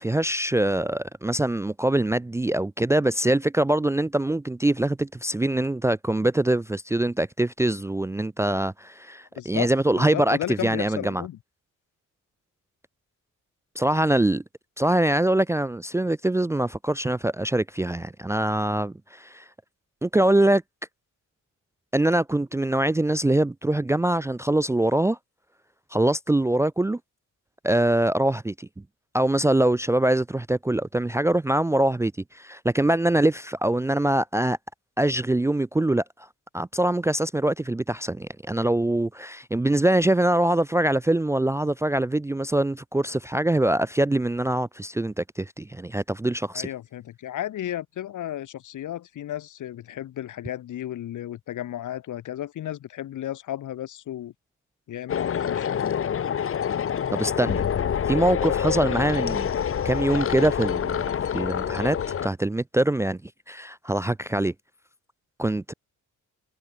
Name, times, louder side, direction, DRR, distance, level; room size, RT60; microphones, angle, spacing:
voice 1, 0.0-11.3 13.8-14.4 14.8-19.4 20.0-20.6 21.9-25.2 25.9-27.0 27.6-28.7 29.1-34.6 35.0-36.0 36.5-46.7 57.1-57.6 58.1-59.5 59.8-61.1 61.3-62.0 62.2-63.2 63.5-64.5 65.4-65.7, right 1 dB, 10° right, 0.5 m, -23 dB
voice 2, 9.4-9.7 10.0-11.4 46.5-54.3 54.9-55.8, left 12 dB, 70° left, 1.9 m, -34 dB
sound 1, 55.1-62.3, left 8 dB, 45° left, 1.6 m, -26 dB
cardioid pair, 160°, 32 cm